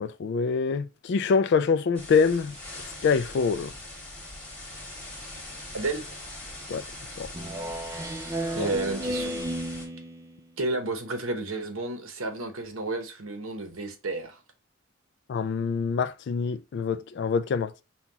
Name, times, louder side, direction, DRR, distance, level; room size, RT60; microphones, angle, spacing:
voice 1, 0.0-2.5 3.0-3.7 6.7-6.8 7.2-7.3 8.6-8.7 15.3-17.8, left 5 dB, 55° left, 0.3 m, -25 dB
sound 1, 1.9-9.9, left 1 dB, 5° left, 1.5 m, -41 dB
voice 2, 5.7-6.2 8.5-9.3 10.6-14.4, right 2 dB, 85° right, 0.9 m, -31 dB
Speech synthesizer, 7.3-10.4, right 1 dB, 15° right, 0.4 m, -33 dB
5.6 x 2.3 x 2.8 m
head